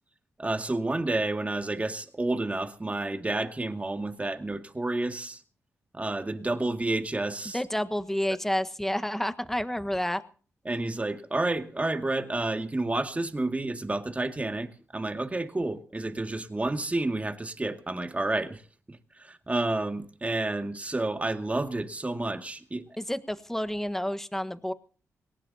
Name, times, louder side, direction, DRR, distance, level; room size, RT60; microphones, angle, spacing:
voice 1, 0.4-5.4 5.9-7.6 10.7-18.6 18.9-23.0, right 2 dB, 25° right, 2.2 m, -30 dB
voice 2, 7.5-10.2 23.0-24.7, left 1 dB, 5° left, 1.4 m, -29 dB
21.5 x 18.5 x 2.8 m
cardioid pair, 60°, 6 cm